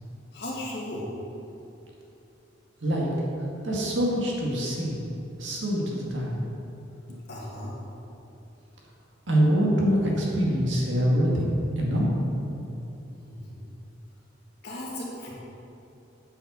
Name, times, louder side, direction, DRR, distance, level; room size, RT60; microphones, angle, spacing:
voice 1, 0.3-1.1 7.3-7.8 13.2-13.7 14.6-15.3, left 1 dB, 55° left, -5 dB, 2.2 m, -36 dB
voice 2, 3.6-5.1 5.4-6.4 9.3-12.1, equal, 70° right, -3 dB, 2.0 m, -24 dB
8.9 x 5.7 x 6.9 m, 2.8 s
head